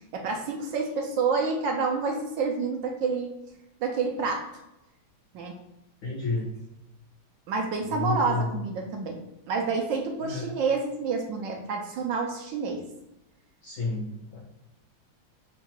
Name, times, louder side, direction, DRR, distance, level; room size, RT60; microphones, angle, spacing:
voice 1, 0.1-3.3 3.8-4.5 5.3-5.6 7.5-9.2 9.5-12.9, right 4 dB, 75° right, 2 dB, 1.3 m, -28 dB
voice 2, 6.0-6.5 7.9-8.5 10.2-10.5 13.6-14.4, left 3 dB, 60° left, -5 dB, 0.9 m, -31 dB
3.8 x 2.3 x 4.4 m, 0.89 s
omnidirectional pair, 2.2 m